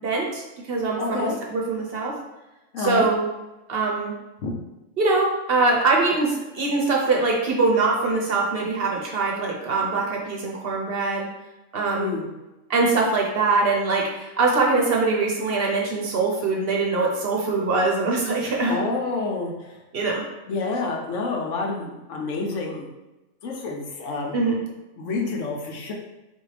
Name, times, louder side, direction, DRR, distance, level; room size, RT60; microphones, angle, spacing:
voice 1, 0.0-2.2 2.8-3.3 3.7-4.1 5.0-11.3 11.7-12.2 12.7-18.8 19.9-20.2 24.3-24.6, right 3 dB, 55° right, -1 dB, 0.8 m, -23 dB
voice 2, 1.0-1.4 2.7-3.1 4.4-4.5 11.9-12.3 18.4-19.8 20.5-22.9 23.4-24.4 25.0-25.9, left 3 dB, 80° left, 0 dB, 1.1 m, -28 dB
4.1 x 2.7 x 3.2 m, 1.0 s
omnidirectional pair, 1.3 m